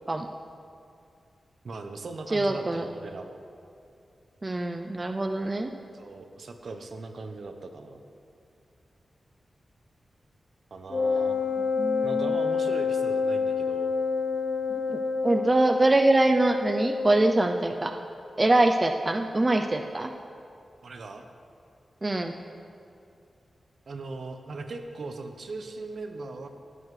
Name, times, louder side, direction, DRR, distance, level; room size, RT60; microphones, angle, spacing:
voice 1, 1.6-3.4 5.9-8.0 10.7-11.4 12.0-13.9 20.8-21.3 23.9-26.5, right 3 dB, 65° right, 6 dB, 0.9 m, -39 dB
voice 2, 2.3-2.9 4.4-5.7 11.8-12.3 14.7-17.9 18.4-20.1 22.0-22.3, right 2 dB, 25° right, 5 dB, 0.4 m, -24 dB
Wind instrument woodwind instrument, 10.9-17.5, left 4 dB, 60° left, 0.8 m, -28 dB
16.0 x 9.5 x 3.3 m, 2.4 s
wide cardioid pair, 110°, 0 cm